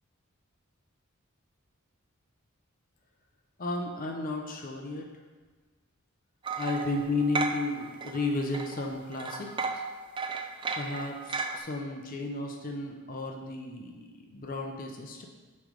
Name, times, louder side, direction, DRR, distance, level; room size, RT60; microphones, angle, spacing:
voice 1, 3.6-5.1 6.6-9.5 9.7-9.8 10.8-15.2, left 2 dB, 40° left, 1 dB, 0.7 m, -33 dB
Wooden-Blocks, 6.4-8.3 8.5-11.6, right 4 dB, 25° right, 0.4 m, -34 dB
9.7 x 3.3 x 5.1 m, 1.3 s
head